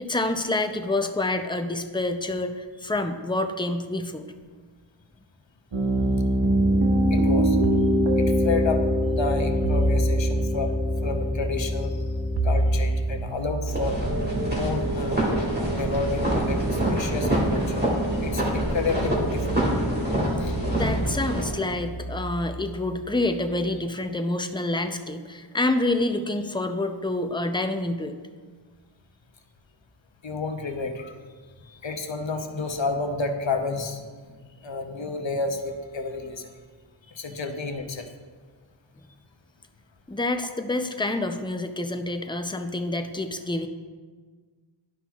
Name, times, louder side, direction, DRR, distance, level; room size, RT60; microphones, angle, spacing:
voice 1, 0.0-4.3 20.7-28.2 40.1-43.7, left 2 dB, 10° left, 6 dB, 0.4 m, -27 dB
Piano, 5.7-13.2, equal, 80° right, 1.1 m, -23 dB
voice 2, 7.1-7.6 8.2-8.8 9.1-11.9 12.4-14.0 14.5-15.4 15.7-17.8 18.2-19.6 20.4-20.6 30.2-31.1 31.7-34.0 34.6-36.5 37.1-38.1, left 3 dB, 65° left, 5 dB, 0.8 m, -30 dB
sound 1, 7.6-8.1 9.6-10.6 12.4-23.7, right 2 dB, 55° right, 0.5 m, -32 dB
sound 2, 13.7-21.5, right 1 dB, 20° right, 2.0 m, -26 dB
11.5 x 5.8 x 2.4 m, 1.5 s
wide cardioid pair, 40°, 49 cm